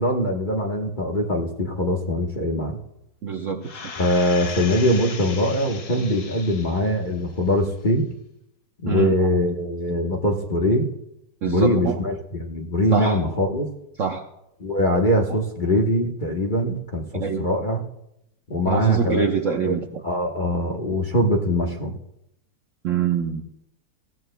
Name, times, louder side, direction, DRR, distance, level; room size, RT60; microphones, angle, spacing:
voice 1, 0.0-2.8 4.0-8.0 8.8-10.9 11.4-13.7 14.6-17.8 18.5-19.7 20.0-22.0, left 1 dB, 35° left, 0 dB, 1.0 m, -22 dB
voice 2, 3.2-3.7 8.9-9.3 11.4-12.0 12.9-13.3 14.0-14.2 17.2-17.5 18.7-19.9 22.8-23.4, right 6 dB, 60° right, 4 dB, 0.9 m, -24 dB
sound 1, 3.6-7.0 7.5-7.6, left 5 dB, 60° left, 1.7 m, -37 dB
21.5 x 15.5 x 2.2 m, 0.83 s
omnidirectional pair, 2.0 m